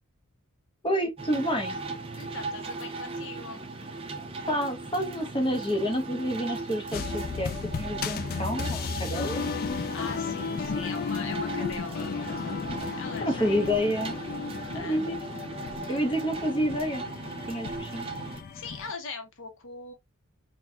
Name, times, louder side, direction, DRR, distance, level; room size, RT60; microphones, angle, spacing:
voice 1, 0.8-1.8 4.5-9.4 13.2-14.2 14.7-15.2 15.9-17.0 17.5-18.1, equal, 20° left, 0.9 m, -29 dB
sound 1, 1.2-18.4, right 3 dB, 25° right, 0.5 m, -38 dB
voice 2, 2.1-3.7 9.7-12.2 13.0-13.7 14.7-15.0 15.8-16.2 18.5-19.9, left 5 dB, 60° left, 0.8 m, -41 dB
sound 2, 6.9-18.9, left 5 dB, 40° left, 0.3 m, -34 dB
4.0 x 2.3 x 2.2 m
head